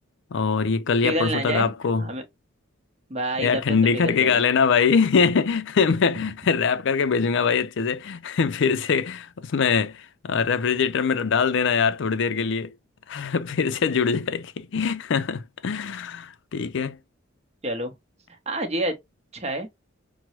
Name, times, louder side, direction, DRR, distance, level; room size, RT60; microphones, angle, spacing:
voice 1, 0.3-2.1 3.4-12.7 13.1-17.0, left 5 dB, 60° left, 0.4 m, -23 dB
voice 2, 1.0-2.2 3.1-4.5 17.6-17.9 18.5-19.0 19.3-19.7, right 1 dB, 30° right, 0.8 m, -28 dB
5.9 x 2.1 x 2.9 m
head